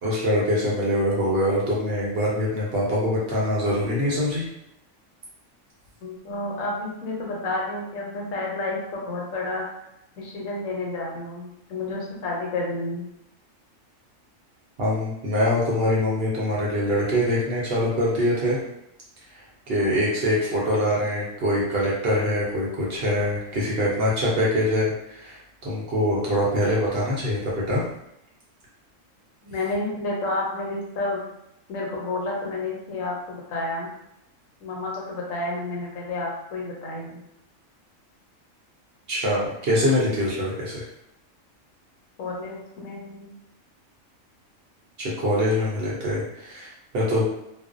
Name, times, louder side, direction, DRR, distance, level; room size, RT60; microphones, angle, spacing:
voice 1, 0.0-4.4 14.8-18.6 19.3-27.8 39.1-40.9 45.0-47.2, equal, 60° right, -5 dB, 0.7 m, -24 dB
voice 2, 6.0-9.6 10.2-13.0 29.4-31.3 31.7-33.9 34.6-37.2 42.2-43.3, left 2 dB, 80° left, -2 dB, 1.1 m, -30 dB
2.5 x 2.0 x 2.4 m, 0.81 s
omnidirectional pair, 1.4 m